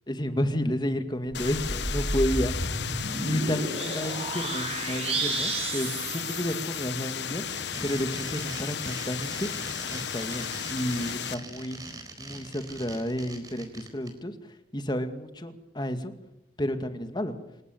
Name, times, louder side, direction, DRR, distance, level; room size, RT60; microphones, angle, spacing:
voice 1, 0.1-2.8 3.2-7.5 7.8-9.5 9.9-11.8 12.2-14.3 14.7-16.1 16.6-17.4, equal, 25° left, 8 dB, 2.2 m, -31 dB
sound 1, 1.3-11.3, left 8 dB, 85° left, 1.1 m, -34 dB
sound 2, 1.3-7.1, right 2 dB, 35° right, 3.7 m, -32 dB
sound 3, 7.4-14.1, right 2 dB, 20° right, 4.4 m, -42 dB
27.5 x 16.0 x 8.0 m, 0.87 s
head